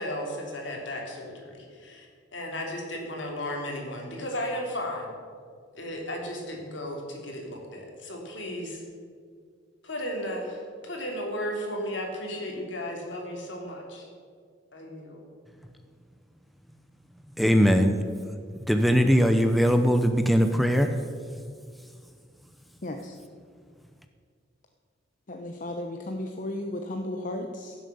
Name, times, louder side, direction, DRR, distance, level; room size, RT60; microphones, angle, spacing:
voice 1, 0.0-2.1 2.3-5.2 5.7-8.8 9.8-14.1 14.7-15.2, left 1 dB, 70° left, 0 dB, 3.2 m, -35 dB
voice 2, 17.4-18.0 18.6-21.0, equal, ahead, 6 dB, 0.6 m, -20 dB
voice 3, 22.8-23.2 25.3-27.7, left 1 dB, 45° left, 4 dB, 0.8 m, -34 dB
16.5 x 7.5 x 7.0 m, 2.1 s
head